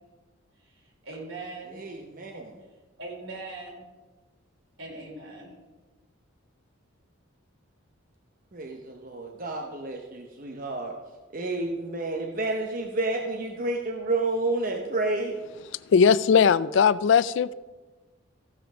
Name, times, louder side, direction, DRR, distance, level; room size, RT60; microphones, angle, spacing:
voice 1, 0.6-1.8 3.0-3.8 4.8-5.5, right 2 dB, 75° right, -2 dB, 4.2 m, -40 dB
voice 2, 1.7-2.6 8.5-10.9 11.3-15.4, right 2 dB, 40° right, 3 dB, 0.8 m, -30 dB
voice 3, 15.9-17.5, left 6 dB, 60° left, 18 dB, 0.3 m, -19 dB
14.5 x 5.8 x 6.2 m, 1.2 s
head